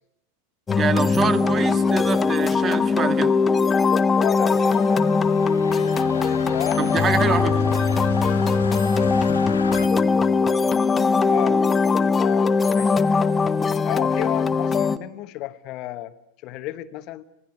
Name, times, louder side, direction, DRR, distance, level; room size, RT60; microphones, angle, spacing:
sound 1, 0.7-15.0, left 4 dB, 15° left, 1.1 m, -20 dB
voice 1, 0.8-3.3 6.8-7.6, right 6 dB, 25° right, 12 dB, 1.7 m, -25 dB
voice 2, 4.2-5.0 6.1-7.7 11.3-11.6 12.0-13.1 13.8-16.1 16.4-17.2, left 16 dB, 40° left, 11 dB, 1.2 m, -33 dB
sound 2, 4.5-9.9, left 5 dB, 70° left, 2.0 m, -35 dB
26.5 x 19.5 x 9.7 m, 0.79 s
figure-of-eight pair, 90°, 0 cm